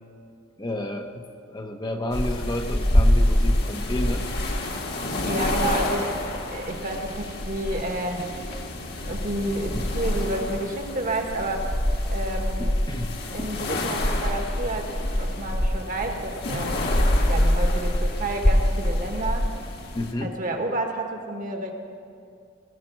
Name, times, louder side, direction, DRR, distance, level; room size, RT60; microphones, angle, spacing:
voice 1, 0.6-4.3 9.0-9.1 9.7-9.9 12.6-13.1 13.4-13.5 19.9-20.3, left 1 dB, 20° left, 4 dB, 0.7 m, -31 dB
sound 1, 2.1-20.1, left 1 dB, 55° left, 1.4 m, -25 dB
voice 2, 5.2-6.1 6.5-8.3 9.0-11.8 12.1-12.7 13.3-16.8 17.3-19.5 20.2-21.7, right 1 dB, 45° right, 3 dB, 1.3 m, -30 dB
18.5 x 6.6 x 7.3 m, 2.4 s
head